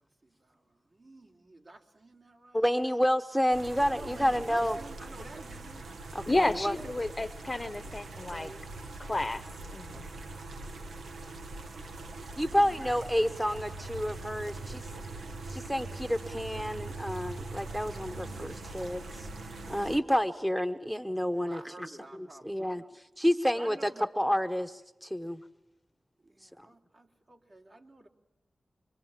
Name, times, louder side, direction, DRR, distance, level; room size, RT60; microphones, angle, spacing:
voice 1, 0.0-2.7 3.9-5.9 8.3-8.6 9.1-9.2 9.9-10.3 10.6-10.9 12.3-12.9 21.3-22.9 23.4-24.1 26.2-28.1, right 2 dB, 55° right, 1 dB, 3.6 m, -51 dB
voice 2, 2.5-4.8 6.1-6.7 12.4-14.8 15.5-19.3 19.7-21.6 22.4-23.9 24.2-25.4, equal, 5° right, 9 dB, 1.0 m, -29 dB
sound 1, 3.5-20.0, right 2 dB, 90° right, 1.4 m, -42 dB
voice 3, 6.3-8.5 9.0-9.4 9.7-10.0, left 2 dB, 30° left, 12 dB, 0.8 m, -31 dB
25.0 x 24.0 x 7.4 m, 0.97 s
cardioid pair, 55°, 0 cm